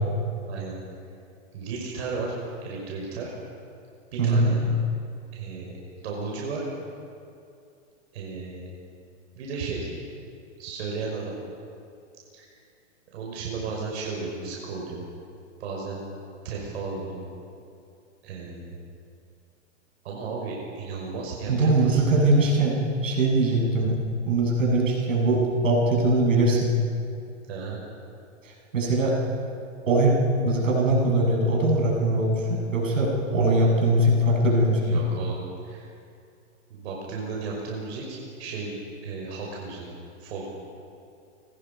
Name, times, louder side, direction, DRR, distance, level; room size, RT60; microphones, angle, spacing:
voice 1, 1.5-2.4 2.6-3.3 4.1-4.6 5.3-5.7 6.0-6.6 8.1-8.7 9.3-9.9 10.6-11.3 12.3-12.5 13.1-15.0 15.6-16.0 16.4-17.2 18.2-18.8 20.0-22.0 27.5-27.8 34.8-35.4 35.6-35.9 36.7-38.8 39.0-39.9 40.2-40.4, right 4 dB, 55° right, -3 dB, 5.7 m, -34 dB
voice 2, 4.2-4.5 21.5-24.0 24.3-26.7 28.7-29.2 29.9-34.8, right 2 dB, 80° right, -2 dB, 7.8 m, -21 dB
29.0 x 20.0 x 5.4 m, 2.5 s
hypercardioid pair, 145°, 38 cm